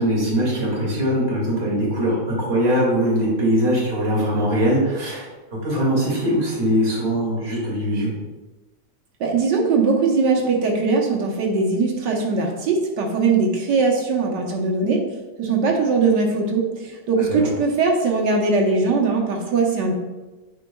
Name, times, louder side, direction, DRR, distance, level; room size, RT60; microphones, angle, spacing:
voice 1, 0.0-5.3 5.6-8.1 17.2-17.4, equal, 35° right, -6 dB, 2.4 m, -21 dB
voice 2, 9.2-15.0 15.4-19.9, right 4 dB, 75° right, 0 dB, 1.6 m, -20 dB
9.2 x 4.6 x 2.3 m, 1.2 s
omnidirectional pair, 1.9 m